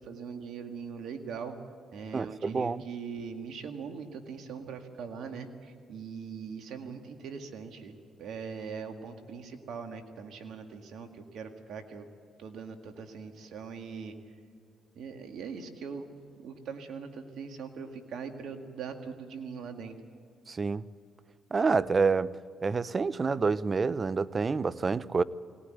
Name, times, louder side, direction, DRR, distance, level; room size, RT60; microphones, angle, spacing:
voice 1, 0.0-1.6 1.9-12.1 12.4-14.1 15.0-16.1 16.4-19.9, right 6 dB, 70° right, 2.0 m, -41 dB
voice 2, 2.1-2.8 20.5-20.9 21.5-22.4 22.6-25.2, right 4 dB, 40° right, 0.7 m, -28 dB
21.5 x 18.0 x 9.1 m
supercardioid pair, 60°, 0 cm